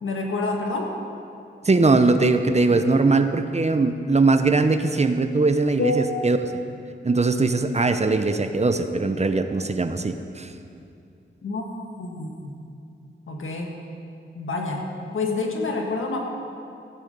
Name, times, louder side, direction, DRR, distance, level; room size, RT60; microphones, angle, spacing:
voice 1, 0.0-0.9 5.8-6.0 11.4-11.6 12.0-12.6 13.3-13.7 14.4-16.2, left 3 dB, 90° left, 1 dB, 1.7 m, -27 dB
voice 2, 1.6-6.4 7.0-10.5, right 3 dB, 35° right, 9 dB, 0.8 m, -20 dB
15.0 x 10.0 x 5.4 m, 2.5 s
wide cardioid pair, 70°, 20 cm